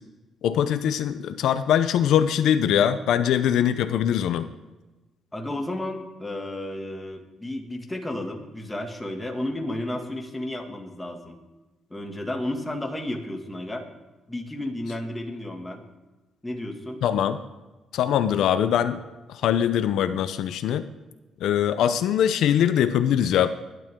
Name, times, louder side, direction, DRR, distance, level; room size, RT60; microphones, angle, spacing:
voice 1, 0.4-4.5 17.0-17.4 17.9-19.0 19.3-20.8 21.4-23.5, left 9 dB, 80° left, 11 dB, 0.6 m, -22 dB
voice 2, 5.3-11.4 11.9-13.8 14.3-15.8 16.4-17.0, left 1 dB, 10° left, 2 dB, 2.2 m, -32 dB
20.0 x 11.5 x 3.7 m, 1.1 s
cardioid pair, 90°, 0 cm